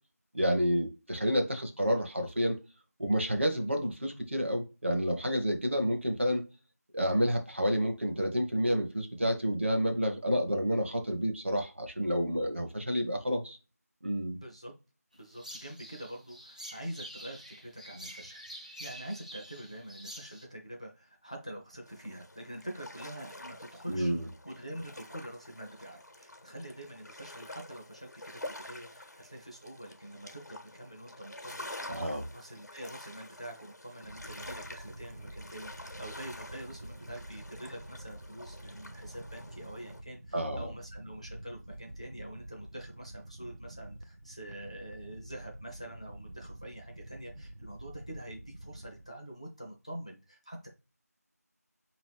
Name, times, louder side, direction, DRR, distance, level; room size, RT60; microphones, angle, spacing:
voice 1, 0.3-2.6 3.0-6.4 6.9-13.6 14.0-14.4 23.9-24.3 31.9-32.2 40.3-40.7, equal, 45° right, 0.9 m, -29 dB
voice 2, 14.4-14.7 15.1-50.7, right 1 dB, 20° left, 0.5 m, -45 dB
sound 1, 15.3-20.5, equal, 25° right, 0.5 m, -47 dB
sound 2, 21.9-40.0, left 1 dB, 85° left, 0.9 m, -48 dB
sound 3, 34.0-49.1, right 1 dB, 85° right, 0.7 m, -48 dB
4.7 x 2.9 x 3.2 m
figure-of-eight pair, 175°, 9 cm